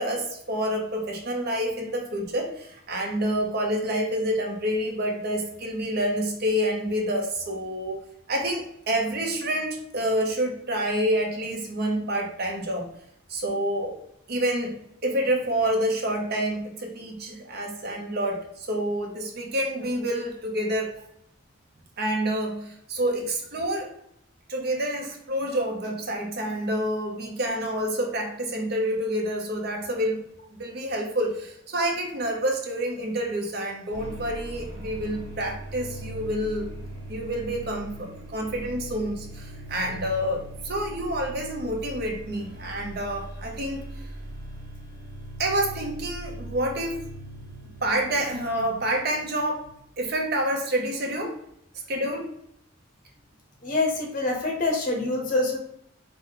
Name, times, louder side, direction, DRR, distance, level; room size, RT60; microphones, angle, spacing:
voice 1, 0.0-8.0 8.3-12.9 13.3-14.0 14.3-20.9 22.0-23.9 24.5-30.2 30.6-36.7 37.1-43.8 45.4-47.1 47.8-49.6 50.0-51.4 51.9-52.3, right 1 dB, 50° right, 1 dB, 0.9 m, -28 dB
sound 1, 33.9-49.8, right 1 dB, 65° right, 1.3 m, -40 dB
voice 2, 53.6-55.6, left 2 dB, 40° left, 1 dB, 0.7 m, -25 dB
5.0 x 2.2 x 3.8 m, 0.74 s
head